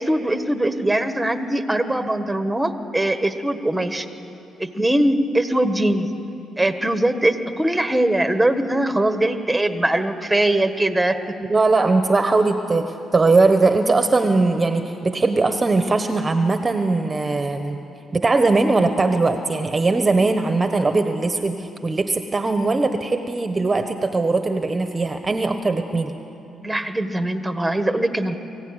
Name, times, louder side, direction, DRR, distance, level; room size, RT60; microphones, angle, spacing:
voice 1, 0.0-4.1 4.6-6.1 6.6-11.3 26.6-28.3, right 1 dB, 5° right, 8 dB, 1.5 m, -21 dB
voice 2, 11.5-17.8 18.1-26.1, right 3 dB, 25° right, 7 dB, 1.2 m, -20 dB
23.0 x 16.0 x 9.8 m, 2.8 s
cardioid pair, 90°, 0 cm